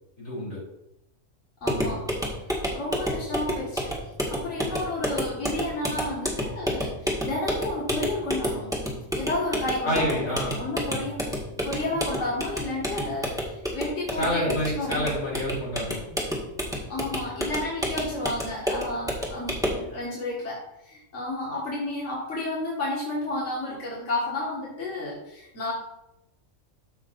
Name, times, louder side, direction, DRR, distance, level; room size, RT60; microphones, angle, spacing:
voice 1, 0.2-0.6 9.8-10.6 14.2-16.0, equal, 90° left, -5 dB, 4.1 m, -28 dB
voice 2, 1.6-2.1 2.7-3.9 4.3-8.7 9.1-10.2 10.6-11.2 11.6-13.4 13.7-15.2 16.9-25.7, left 2 dB, 60° left, -6 dB, 2.2 m, -31 dB
sound 1, 1.6-19.9, equal, 5° right, 1.7 m, -30 dB
13.5 x 5.9 x 2.6 m, 0.85 s
omnidirectional pair, 1.4 m